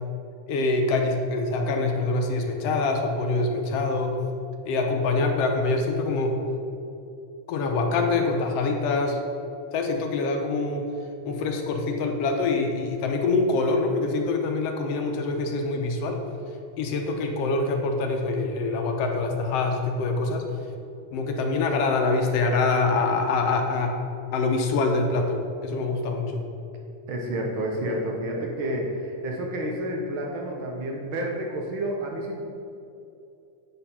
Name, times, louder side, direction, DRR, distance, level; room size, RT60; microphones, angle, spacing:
voice 1, 0.5-4.2 4.7-6.4 7.5-9.2 9.7-10.8 11.2-16.2 16.8-20.4 21.1-23.9 24.3-26.4, left 3 dB, 75° left, 3 dB, 1.5 m, -25 dB
voice 2, 27.1-32.4, right 1 dB, 80° right, 0 dB, 1.1 m, -30 dB
8.7 x 4.5 x 5.5 m, 2.7 s
omnidirectional pair, 3.4 m